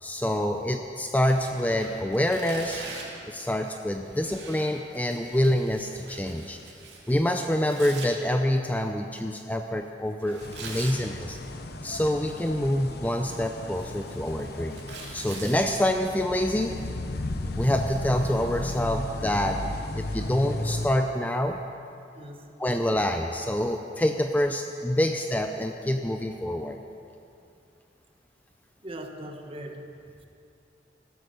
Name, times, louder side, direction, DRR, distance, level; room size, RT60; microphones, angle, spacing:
voice 1, 0.0-2.8 3.3-6.6 7.1-11.4 11.8-14.8 15.1-16.8 17.5-19.6 19.9-21.6 22.6-26.8, left 1 dB, 10° left, 5 dB, 0.5 m, -26 dB
Tearing, 1.2-3.2 4.0-8.1 10.2-11.0 12.3-12.8 13.2-15.6, right 4 dB, 65° right, 2.7 m, -43 dB
sound 1, 10.4-20.9, left 2 dB, 60° left, 0.9 m, -35 dB
voice 2, 22.1-22.5 28.8-30.2, right 1 dB, 30° right, 3 dB, 1.3 m, -41 dB
15.5 x 13.0 x 6.8 m, 2.6 s
head